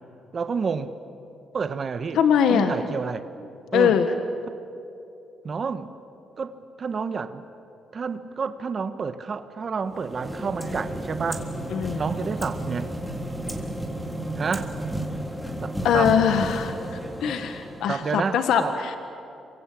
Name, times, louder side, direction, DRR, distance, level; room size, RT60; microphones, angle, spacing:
voice 1, 0.3-0.9 1.5-2.2 2.5-3.3 3.7-4.0 5.4-5.9 6.4-7.4 7.9-11.4 11.9-12.9 14.4-14.7 15.6-16.1 17.9-18.8, right 5 dB, 45° right, 10 dB, 1.3 m, -29 dB
voice 2, 2.1-2.7 3.7-4.1 11.7-12.0 15.8-16.7 17.2-19.0, left 8 dB, 80° left, 7 dB, 1.5 m, -21 dB
sound 1, 9.9-18.1, right 1 dB, 5° left, 3.7 m, -32 dB
27.0 x 24.5 x 8.6 m, 2.7 s
cardioid pair, 90°, 0 cm